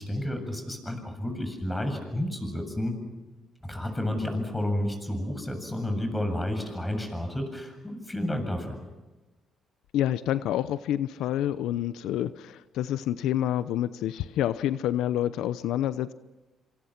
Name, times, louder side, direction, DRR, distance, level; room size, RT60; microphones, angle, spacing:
voice 1, 0.0-3.0 3.6-8.8, left 1 dB, 10° left, 6 dB, 7.4 m, -31 dB
voice 2, 9.9-16.1, left 12 dB, 85° left, 13 dB, 0.8 m, -28 dB
27.0 x 27.0 x 6.0 m, 1.1 s
cardioid pair, 90°, 0 cm